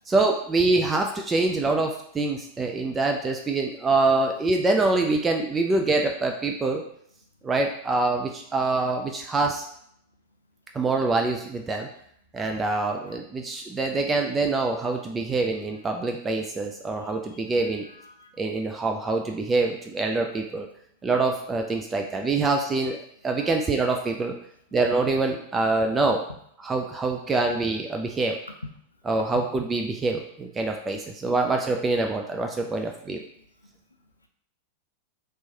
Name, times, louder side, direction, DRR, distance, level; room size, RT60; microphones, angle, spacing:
voice 1, 0.1-6.8 7.4-9.7 10.7-11.9 12.3-17.9 18.4-20.7 21.0-23.0 23.2-24.3 24.7-26.2 26.6-28.4 29.1-33.2, right 3 dB, 15° right, 2 dB, 0.3 m, -25 dB
voice 2, 12.4-13.2 17.0-18.3 23.4-23.5 24.7-24.8, left 3 dB, 80° left, 5 dB, 0.3 m, -53 dB
3.2 x 3.0 x 2.8 m, 0.69 s
figure-of-eight pair, 90°, 0 cm